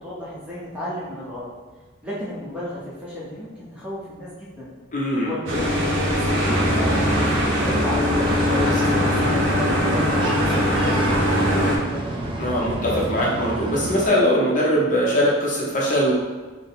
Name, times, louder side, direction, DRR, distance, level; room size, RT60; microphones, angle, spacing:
voice 1, 0.0-1.5 2.0-4.7 5.1-9.9 10.3-12.2, left 1 dB, 5° right, -8 dB, 0.7 m, -33 dB
voice 2, 4.9-5.3 8.5-8.8 12.4-16.1, equal, 40° left, -5 dB, 0.7 m, -21 dB
sound 1, 5.5-11.8, equal, 65° right, 0.7 m, -21 dB
sound 2, 6.4-14.1, right 1 dB, 25° right, 0.4 m, -28 dB
3.8 x 2.1 x 3.9 m, 1.3 s
head